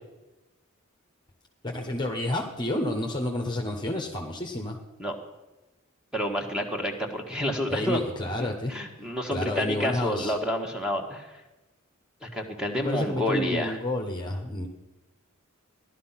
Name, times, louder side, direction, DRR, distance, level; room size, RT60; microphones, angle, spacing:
voice 1, 1.6-4.8 7.7-8.7 9.3-10.3 12.8-14.7, left 1 dB, 20° left, 2 dB, 1.2 m, -30 dB
voice 2, 6.1-8.0 8.7-11.4 12.2-13.8, equal, 5° right, 2 dB, 1.7 m, -29 dB
16.0 x 12.0 x 5.8 m, 1.1 s
head